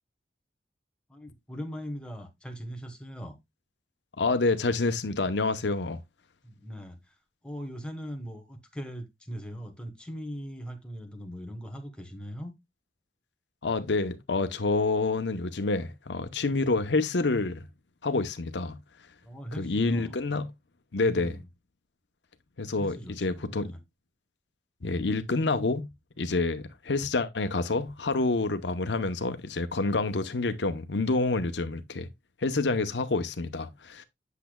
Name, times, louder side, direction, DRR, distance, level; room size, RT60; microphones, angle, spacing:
voice 1, 1.1-3.4 6.4-7.1 7.4-12.5 19.2-20.4 21.0-21.5 22.8-23.8, equal, 5° left, 1.3 m, -40 dB
voice 2, 4.2-6.0 13.6-17.7 18.0-18.8 19.6-20.5 20.9-21.4 22.6-23.7 24.8-25.9 26.2-32.1 32.4-34.0, left 3 dB, 85° left, 0.8 m, -28 dB
8.3 x 6.8 x 2.2 m
head